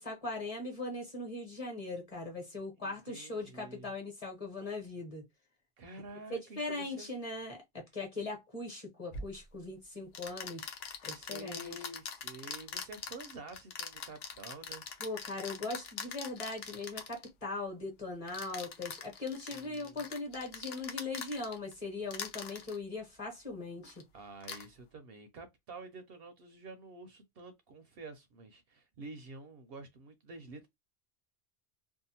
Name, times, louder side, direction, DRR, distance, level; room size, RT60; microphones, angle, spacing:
voice 1, 0.0-5.2 6.3-10.7 11.0-11.9 15.0-24.0, left 2 dB, 35° left, 1.1 m, -40 dB
voice 2, 2.8-3.9 5.8-7.1 11.1-14.8 19.5-20.0 24.1-30.7, right 2 dB, 65° right, 0.7 m, -49 dB
sound 1, 9.1-9.3 10.1-17.3 18.3-21.7 22.1-22.8 23.8-24.0 24.4-24.6, left 6 dB, 65° left, 0.8 m, -43 dB
2.7 x 2.3 x 2.7 m
omnidirectional pair, 1.2 m